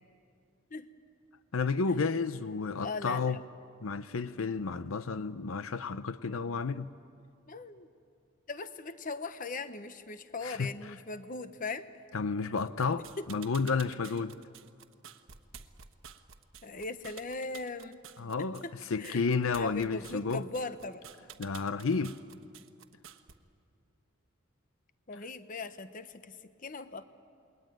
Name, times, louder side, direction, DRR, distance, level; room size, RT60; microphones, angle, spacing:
voice 1, 1.5-3.4 3.8-6.9 10.4-10.9 12.1-14.4 18.2-20.4 21.4-22.2, left 4 dB, 80° left, 0.6 m, -31 dB
voice 2, 2.8-3.4 7.5-7.9 8.5-11.9 13.2-13.3 16.6-18.0 18.4-21.0 25.1-27.0, left 3 dB, 40° left, 1.0 m, -39 dB
sound 1, 12.6-23.3, right 8 dB, 80° right, 1.2 m, -51 dB
28.5 x 21.5 x 9.3 m
head